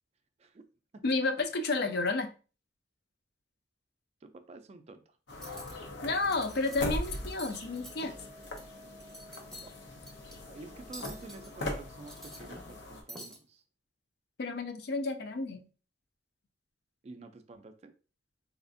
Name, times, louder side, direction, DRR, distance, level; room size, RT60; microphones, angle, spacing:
voice 1, 1.0-2.3 6.0-8.1 14.4-15.6, left 3 dB, 60° left, 0.5 m, -31 dB
voice 2, 4.2-5.2 9.6-9.7 10.4-13.6 17.0-17.9, right 3 dB, 35° right, 0.4 m, -49 dB
sound 1, 5.3-13.0, left 1 dB, 90° left, 0.8 m, -41 dB
Cutlery silverware, 5.3-5.7 6.2-6.8 7.0-8.6 9.0-9.7 10.1-10.3 10.9-11.5 11.9-12.8 13.1-13.4, right 1 dB, 5° left, 0.6 m, -47 dB
4.2 x 2.4 x 2.5 m
head